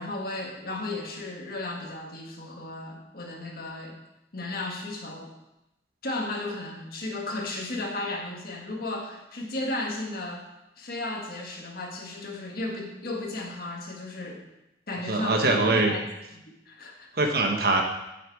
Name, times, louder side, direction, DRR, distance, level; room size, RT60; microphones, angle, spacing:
voice 1, 0.0-4.0 4.3-5.3 6.0-10.4 10.8-14.4 14.9-16.0 16.3-17.2, left 2 dB, 55° left, 0 dB, 1.8 m, -34 dB
voice 2, 15.1-15.9 17.2-17.8, right 2 dB, 60° right, 3 dB, 1.3 m, -22 dB
9.3 x 6.7 x 4.8 m, 0.91 s
head